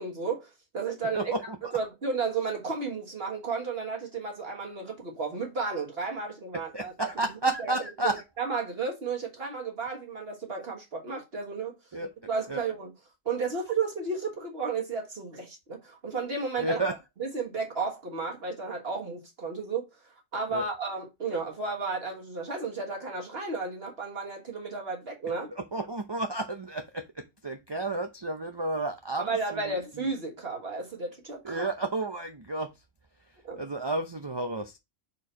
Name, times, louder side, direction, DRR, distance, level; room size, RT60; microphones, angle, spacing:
voice 1, 0.0-1.2 1.7-7.1 7.6-7.7 8.0-11.8 12.3-12.9 13.2-16.8 17.2-19.9 20.3-25.5 29.2-31.7 33.4-33.6, right 4 dB, 50° right, 1.7 m, -33 dB
voice 2, 1.1-1.7 6.7-8.2 11.9-12.1 12.5-12.6 16.6-17.0 20.5-20.6 25.5-30.1 31.4-32.7 33.6-34.8, right 2 dB, 30° right, 0.6 m, -32 dB
4.8 x 4.5 x 5.5 m
omnidirectional pair, 1.3 m